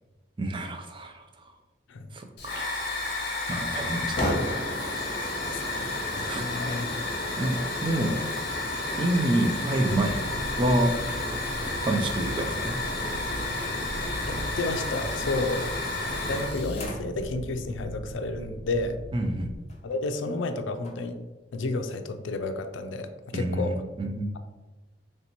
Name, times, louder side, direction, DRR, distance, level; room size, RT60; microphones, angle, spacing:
voice 1, 0.4-1.3 2.1-2.7 3.5-5.0 6.3-6.6 7.4-8.2 9.0-10.2 10.6-10.9 11.8-12.7 19.1-19.5 23.3-24.3, right 1 dB, 25° right, 5 dB, 0.4 m, -28 dB
Hiss / Fire, 2.4-16.9, left 2 dB, 55° left, 0.9 m, -31 dB
voice 2, 5.5-7.0 14.3-15.7 16.1-19.0 19.8-21.2 21.5-23.8, left 2 dB, 85° left, 8 dB, 0.4 m, -31 dB
sound 1, 9.8-19.6, right 1 dB, 85° right, 0.5 m, -39 dB
sound 2, 16.2-17.2 18.1-18.2 18.5-18.6 19.7-20.0 20.3-20.4 20.8-20.9, left 2 dB, 35° left, 0.6 m, -43 dB
3.2 x 2.9 x 4.1 m, 1.1 s
head